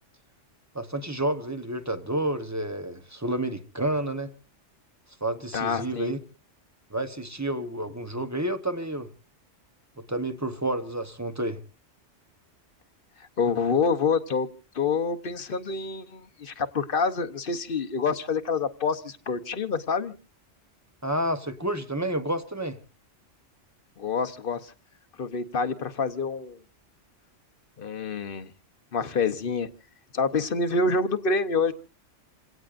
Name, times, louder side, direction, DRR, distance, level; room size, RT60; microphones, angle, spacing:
voice 1, 0.7-4.3 5.2-6.2 6.9-9.1 10.0-11.6 21.0-22.8, right 1 dB, 15° right, 1.0 m, -30 dB
voice 2, 5.5-6.1 13.4-14.5 14.7-20.1 24.0-24.7 25.2-26.6 27.8-28.5 28.9-29.7 30.1-31.7, left 4 dB, 50° left, 1.0 m, -27 dB
28.0 x 17.5 x 2.5 m
omnidirectional pair, 1.3 m